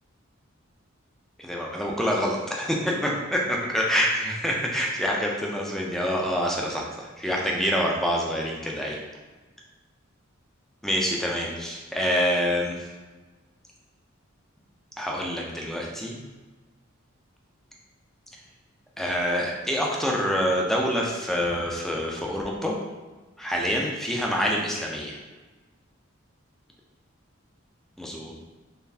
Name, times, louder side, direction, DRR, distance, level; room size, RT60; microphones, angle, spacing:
voice 1, 1.4-9.0 10.8-12.9 15.0-16.2 19.0-22.7 23.4-25.2 28.0-28.4, equal, ahead, -2 dB, 0.4 m, -26 dB
3.8 x 3.3 x 2.7 m, 1.2 s
head